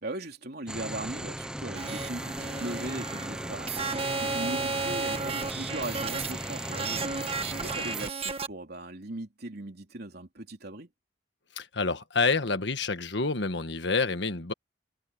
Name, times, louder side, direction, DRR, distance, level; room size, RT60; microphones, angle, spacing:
voice 1, 0.0-10.9, right 2 dB, 60° right, 3.3 m, -39 dB
sound 1, 0.7-8.1, right 1 dB, 5° right, 0.9 m, -37 dB
sound 2, 1.7-8.5, right 4 dB, 35° right, 1.5 m, -34 dB
voice 2, 11.5-14.5, left 4 dB, 70° left, 1.5 m, -28 dB
head